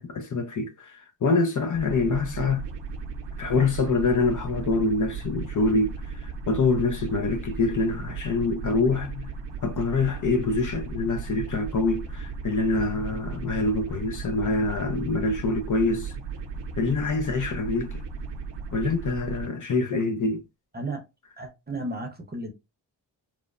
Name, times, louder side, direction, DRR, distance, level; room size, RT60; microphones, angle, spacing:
voice 1, 0.0-2.7 3.4-5.9 6.2-9.3 9.6-16.1 16.8-18.0 18.7-20.4, left 3 dB, 45° left, 0.4 m, -25 dB
sound 1, 1.7-19.5, right 5 dB, 75° right, 0.6 m, -36 dB
voice 2, 21.4-22.5, right 2 dB, 25° right, 0.7 m, -33 dB
3.0 x 2.0 x 2.3 m
wide cardioid pair, 85°, 43 cm